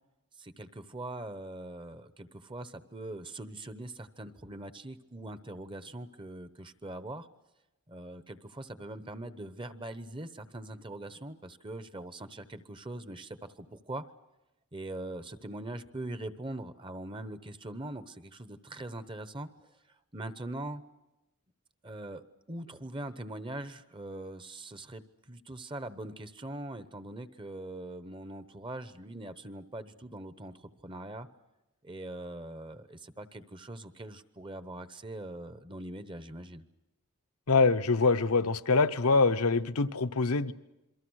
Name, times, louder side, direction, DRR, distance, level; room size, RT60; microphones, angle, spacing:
voice 1, 0.4-7.3 7.9-14.0 14.7-19.5 20.1-20.8 21.8-25.0 25.3-31.3 31.8-36.6, right 1 dB, 20° right, 12 dB, 0.9 m, -42 dB
voice 2, 37.5-40.5, left 4 dB, 75° left, 11 dB, 0.9 m, -24 dB
28.0 x 23.0 x 6.4 m, 0.96 s
head